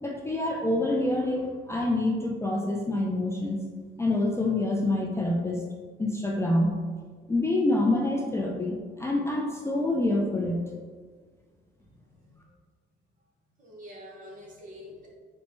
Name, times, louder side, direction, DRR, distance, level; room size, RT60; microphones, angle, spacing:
voice 1, 0.0-3.6 4.0-5.6 6.0-6.8 7.3-10.6, left 2 dB, 15° left, -1 dB, 0.3 m, -26 dB
voice 2, 11.8-12.5 13.6-15.1, left 1 dB, 40° right, -3 dB, 1.0 m, -47 dB
4.1 x 2.2 x 3.0 m, 1.5 s
cardioid pair, 90°, 20 cm